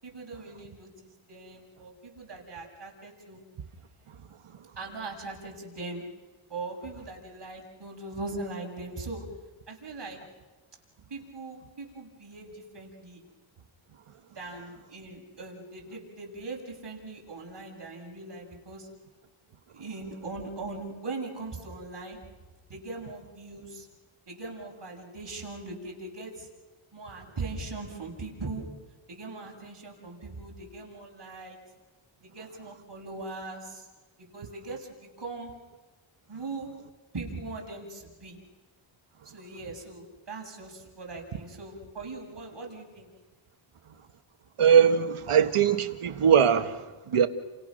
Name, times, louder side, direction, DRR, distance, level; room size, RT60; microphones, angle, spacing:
voice 1, 0.0-3.4 4.8-6.0 6.5-9.3 9.7-10.2 11.1-13.2 14.3-18.9 19.7-22.2 22.7-23.9 24.3-26.5 26.9-28.6 29.1-31.6 32.2-33.9 34.3-35.5 36.3-36.7 37.1-38.4 39.3-43.1, right 3 dB, 55° right, 7.3 m, -40 dB
voice 2, 44.6-47.3, right 8 dB, 80° right, 1.5 m, -21 dB
30.0 x 29.0 x 6.5 m
cardioid pair, 75°, 50 cm